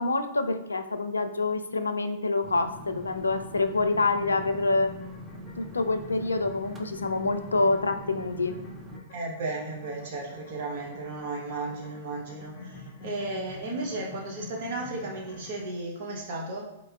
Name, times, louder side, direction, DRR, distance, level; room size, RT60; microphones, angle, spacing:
voice 1, 0.0-4.9 5.6-8.5, left 3 dB, 85° left, 8 dB, 0.4 m, -26 dB
sound 1, 2.4-9.0, equal, 20° right, 0.6 m, -43 dB
sound 2, 3.7-15.7, left 2 dB, 40° left, 1.4 m, -48 dB
voice 2, 9.1-16.6, right 2 dB, 55° right, -1 dB, 0.9 m, -34 dB
4.3 x 3.8 x 2.3 m, 0.94 s
figure-of-eight pair, 110°, 0 cm